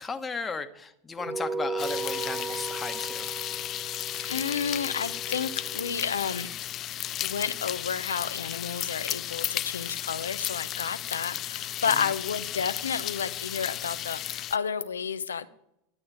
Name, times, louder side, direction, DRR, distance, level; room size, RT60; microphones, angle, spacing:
voice 1, 0.0-3.3 12.0-12.1, left 4 dB, 20° left, 8 dB, 1.2 m, -35 dB
sound 1, 1.2-6.0, right 3 dB, 20° right, 0.5 m, -36 dB
sound 2, 1.8-14.6, left 12 dB, 40° left, 0.3 m, -34 dB
voice 2, 4.2-6.5 7.2-15.5, left 7 dB, 85° left, 13 dB, 0.7 m, -31 dB
12.0 x 8.6 x 4.8 m, 0.79 s
hypercardioid pair, 90°, 0 cm